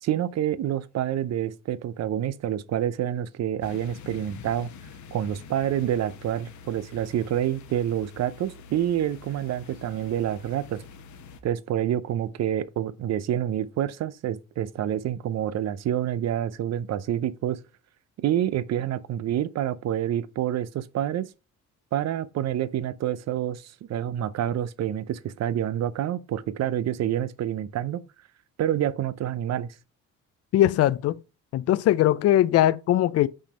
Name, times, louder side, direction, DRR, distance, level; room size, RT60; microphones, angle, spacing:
voice 1, 0.0-4.7 5.1-10.8 11.4-17.6 18.2-21.3 21.9-28.0 28.6-29.7, right 11 dB, 60° right, 0.6 m, -27 dB
sound 1, 3.6-11.4, left 5 dB, 70° left, 1.0 m, -46 dB
voice 2, 30.5-31.2 31.5-33.3, left 13 dB, 55° left, 0.4 m, -20 dB
5.3 x 3.5 x 5.2 m
cardioid pair, 90°, 30 cm